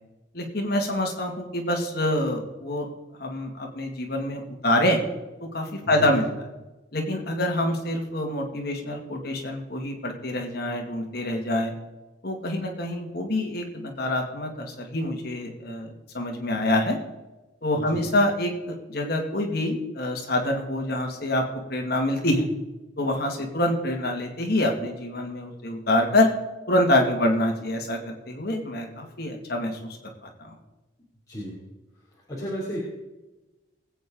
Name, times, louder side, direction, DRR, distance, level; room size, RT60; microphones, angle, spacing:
voice 1, 0.3-2.9 3.2-5.0 5.4-6.3 6.9-11.7 12.2-17.0 17.6-21.4 21.7-22.5 23.0-26.3 26.7-30.6, left 1 dB, 50° left, 2 dB, 2.2 m, -26 dB
voice 2, 17.8-18.1 31.3-31.6 32.3-32.8, equal, 20° left, -7 dB, 3.1 m, -33 dB
20.5 x 8.6 x 3.9 m, 1.1 s
head